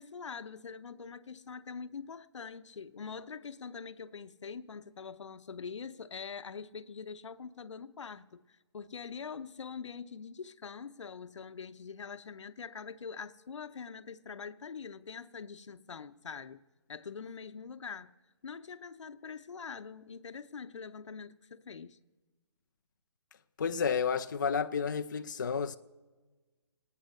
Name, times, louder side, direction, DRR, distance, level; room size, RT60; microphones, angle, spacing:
voice 1, 0.0-16.6 16.9-18.1 18.4-22.0, left 6 dB, 85° left, 0.7 m, -44 dB
voice 2, 23.6-25.8, left 6 dB, 40° left, 0.4 m, -31 dB
18.0 x 9.2 x 6.5 m
hypercardioid pair, 175°, 15 cm